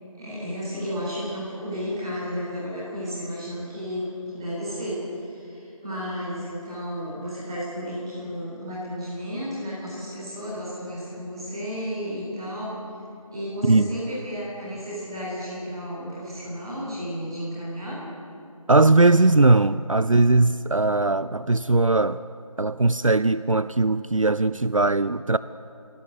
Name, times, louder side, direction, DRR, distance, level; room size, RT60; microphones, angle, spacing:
voice 1, 0.1-12.8 13.3-18.0, equal, 10° right, -11 dB, 4.7 m, -33 dB
voice 2, 18.7-22.2 22.6-25.4, right 2 dB, 65° right, 15 dB, 0.6 m, -19 dB
25.5 x 17.0 x 8.4 m, 2.8 s
figure-of-eight pair, 175°, 18 cm